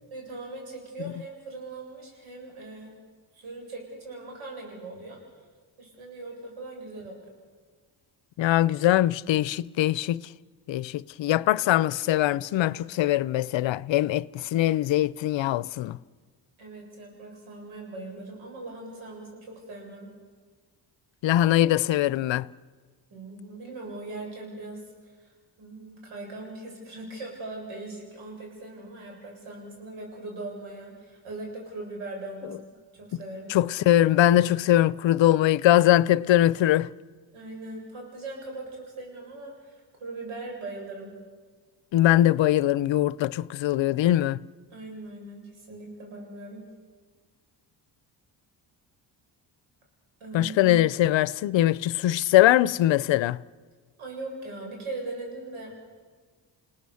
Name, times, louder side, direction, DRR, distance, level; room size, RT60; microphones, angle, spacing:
voice 1, 0.1-2.9 3.3-5.2 5.8-7.1 16.6-20.1 23.1-25.3 25.6-33.5 37.3-41.1 44.7-46.7 50.2-50.7 54.0-55.8, right 2 dB, 85° right, 8.0 m, -40 dB
voice 2, 8.4-10.2 10.7-16.0 21.2-22.5 33.5-36.9 41.9-44.4 50.3-53.4, left 13 dB, 65° left, 0.7 m, -22 dB
29.5 x 18.5 x 7.1 m
supercardioid pair, 60°, 47 cm